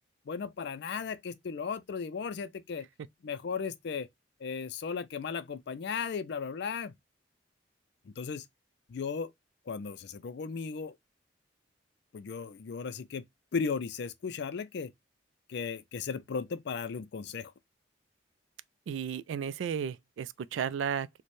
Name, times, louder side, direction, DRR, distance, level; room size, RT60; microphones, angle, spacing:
voice 1, 0.3-2.9 3.2-4.1 4.4-6.9 8.1-8.4 8.9-9.3 9.7-11.0 12.1-13.3 13.5-14.9 15.5-17.5, left 5 dB, 60° left, 0.4 m, -36 dB
voice 2, 18.9-21.2, right 8 dB, 80° right, 0.3 m, -34 dB
4.1 x 2.1 x 3.1 m
head